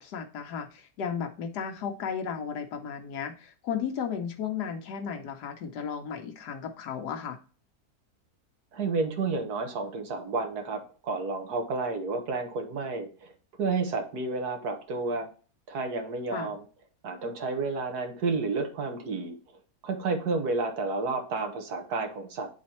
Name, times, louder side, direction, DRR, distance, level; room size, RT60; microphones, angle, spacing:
voice 1, 0.0-7.4 16.3-16.5, left 7 dB, 85° left, 5 dB, 1.4 m, -34 dB
voice 2, 8.7-13.3 13.6-15.3 15.7-16.6 17.0-19.4 19.8-22.5, right 3 dB, 75° right, 4 dB, 1.7 m, -31 dB
9.3 x 4.1 x 2.9 m, 0.38 s
omnidirectional pair, 1.7 m